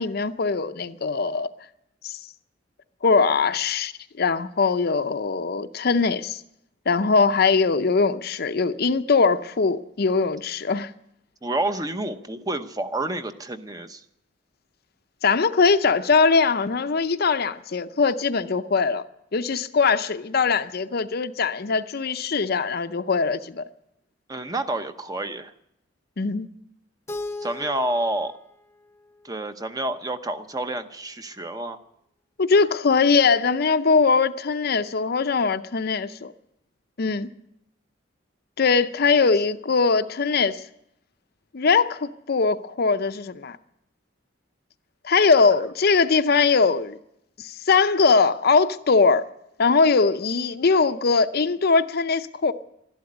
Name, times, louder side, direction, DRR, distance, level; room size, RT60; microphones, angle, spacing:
voice 1, 0.0-1.5 2.0-2.2 3.0-3.9 4.2-6.4 6.9-10.9 15.2-19.0 19.3-23.7 26.2-26.5 32.4-36.3 37.0-37.3 38.6-40.6 41.5-43.6 45.0-47.0 47.4-49.3 49.6-52.5, left 4 dB, 55° left, 0.6 m, -21 dB
voice 2, 11.4-14.0 24.3-25.5 27.4-28.3 29.2-31.8 39.2-39.3, right 2 dB, 20° right, 0.8 m, -29 dB
Keyboard (musical), 27.1-30.0, left 2 dB, 15° left, 0.8 m, -38 dB
12.5 x 11.5 x 9.6 m
head